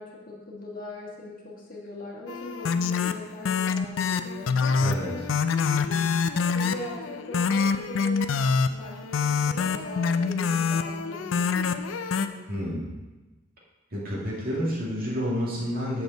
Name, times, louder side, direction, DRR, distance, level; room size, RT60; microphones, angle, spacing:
voice 1, 0.0-4.7 4.9-5.3 5.7-12.6, left 1 dB, 45° left, -3 dB, 1.6 m, -41 dB
sound 1, 2.3-12.3, left 5 dB, 80° left, 0.4 m, -26 dB
voice 2, 12.5-12.8 13.9-16.0, equal, 50° right, -4 dB, 2.1 m, -29 dB
8.1 x 6.8 x 3.9 m, 1.2 s
head